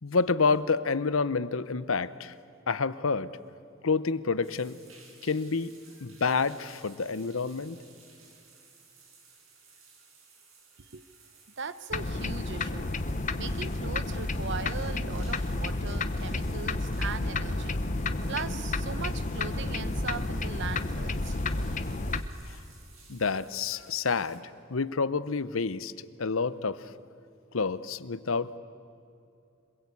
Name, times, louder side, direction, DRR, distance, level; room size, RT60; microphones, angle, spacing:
voice 1, 0.0-2.3 2.7-3.4 3.8-4.8 5.2-5.7 6.0-7.8 22.5-22.6 23.1-24.4 24.7-26.9 27.5-28.6, left 4 dB, 80° left, 16 dB, 0.8 m, -28 dB
sound 1, 4.4-24.4, right 4 dB, 85° right, 4.9 m, -57 dB
voice 2, 11.6-12.9 13.4-17.9 18.3-21.4, right 5 dB, 60° right, 14 dB, 0.9 m, -39 dB
sound 2, 11.9-22.2, left 2 dB, 40° left, 0.9 m, -31 dB
26.5 x 21.5 x 8.5 m, 2.7 s
head